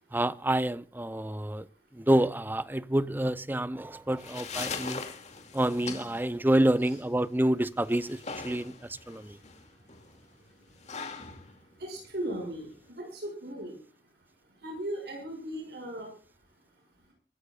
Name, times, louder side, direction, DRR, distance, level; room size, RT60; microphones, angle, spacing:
voice 1, 0.1-1.7 1.9-5.0 5.5-8.7 9.1-9.4, right 1 dB, 10° right, 0.6 m, -28 dB
sound 1, 3.9-12.9, left 5 dB, 40° left, 2.4 m, -42 dB
voice 2, 11.8-13.8 14.6-16.1, right 1 dB, 65° right, 6.7 m, -37 dB
24.0 x 13.5 x 2.4 m
head